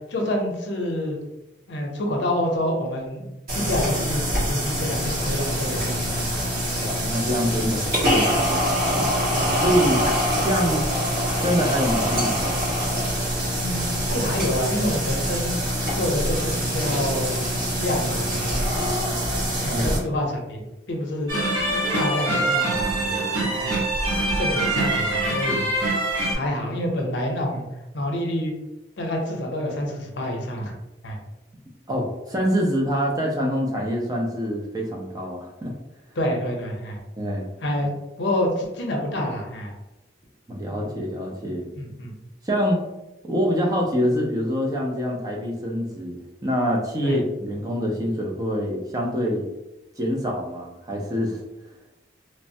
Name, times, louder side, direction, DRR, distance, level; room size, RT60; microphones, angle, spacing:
voice 1, 0.1-1.2 1.7-6.3 9.3-9.5 13.6-15.6 15.9-17.3 17.8-19.0 19.6-20.6 20.9-21.3 21.9-23.8 24.3-25.7 26.3-27.6 27.9-28.5 29.0-30.7 31.0-31.2 36.2-37.0 37.6-37.9 38.2-39.7 41.7-42.1 47.0-47.2, left 1 dB, 70° left, 1 dB, 0.6 m, -27 dB
sound 1, 3.5-20.0, equal, 50° right, 1.3 m, -24 dB
voice 2, 6.8-8.6 9.6-10.0 10.4-10.9 11.4-12.6 19.7-20.0 31.9-35.7 37.2-37.4 40.5-41.7 42.4-42.8 43.2-49.5 50.0-51.4, equal, 20° right, -1 dB, 0.4 m, -25 dB
sound 2, 21.3-26.3, right 1 dB, 80° right, 0.9 m, -24 dB
3.1 x 2.0 x 2.6 m, 0.96 s
head